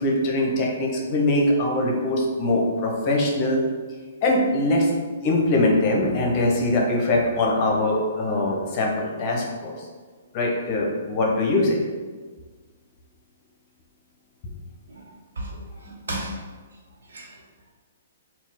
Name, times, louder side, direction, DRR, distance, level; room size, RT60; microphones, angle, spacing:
voice 1, 0.0-3.6 4.2-4.9 5.2-9.7 10.3-11.8, left 1 dB, 35° left, -1 dB, 0.8 m, -22 dB
voice 2, 14.9-16.4 17.1-17.4, right 1 dB, 70° right, -2 dB, 1.0 m, -35 dB
3.9 x 2.3 x 3.7 m, 1.5 s
figure-of-eight pair, 125°, 0 cm